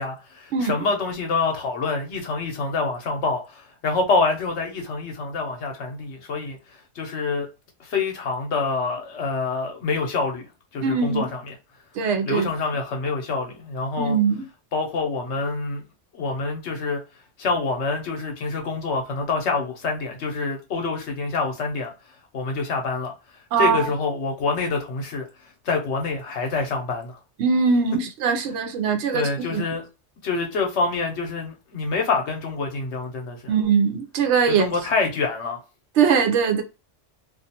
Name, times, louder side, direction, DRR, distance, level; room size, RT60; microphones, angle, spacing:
voice 1, 0.0-7.5 7.8-10.5 10.7-11.5 12.3-14.2 14.7-15.8 16.1-17.0 17.4-21.9 22.3-23.1 23.6-25.3 25.6-27.2 29.1-29.9 30.2-33.4 34.5-35.6, left 4 dB, 70° left, 1.0 m, -26 dB
voice 2, 10.8-11.3 12.0-12.5 14.0-14.5 23.5-23.9 27.4-29.6 33.5-34.7 36.0-36.6, right 6 dB, 70° right, 0.8 m, -21 dB
2.5 x 2.4 x 2.7 m
omnidirectional pair, 1.2 m